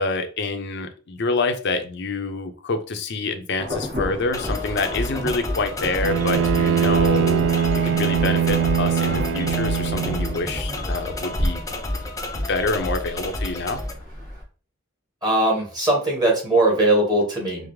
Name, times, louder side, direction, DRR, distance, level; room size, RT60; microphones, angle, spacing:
voice 1, 0.0-7.4 7.8-11.6 12.3-13.8, left 3 dB, 60° left, 7 dB, 0.6 m, -27 dB
Insect / Thunder / Rain, 3.6-14.4, left 1 dB, 45° right, 1.5 m, -32 dB
sound 1, 4.3-13.9, left 2 dB, 15° left, 0.5 m, -30 dB
Bowed string instrument, 6.0-10.5, right 8 dB, 70° right, 0.3 m, -22 dB
voice 2, 15.2-17.7, right 1 dB, 20° right, -2 dB, 1.4 m, -20 dB
5.0 x 2.0 x 3.1 m, 0.38 s
head